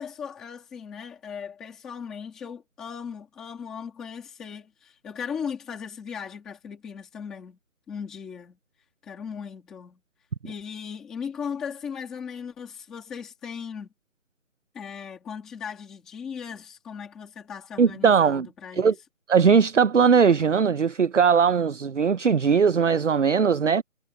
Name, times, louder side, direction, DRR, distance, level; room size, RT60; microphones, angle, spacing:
voice 1, 0.0-7.6 7.9-8.6 9.0-10.0 10.4-13.9 14.7-18.9, left 7 dB, ahead, 1.9 m, -37 dB
voice 2, 17.8-18.5 18.8-18.9 19.3-23.8, right 6 dB, 60° right, 0.7 m, -19 dB
figure-of-eight pair, 180°, 41 cm